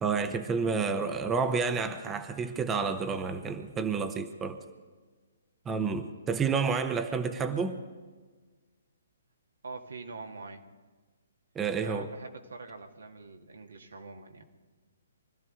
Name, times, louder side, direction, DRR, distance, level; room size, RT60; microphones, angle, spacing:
voice 1, 0.0-4.6 5.7-7.8 11.6-12.1, right 5 dB, 15° right, 8 dB, 0.9 m, -30 dB
voice 2, 9.6-10.6 11.8-14.4, right 3 dB, 75° right, 3 dB, 1.8 m, -44 dB
24.0 x 13.5 x 3.8 m, 1.4 s
figure-of-eight pair, 130°, 0 cm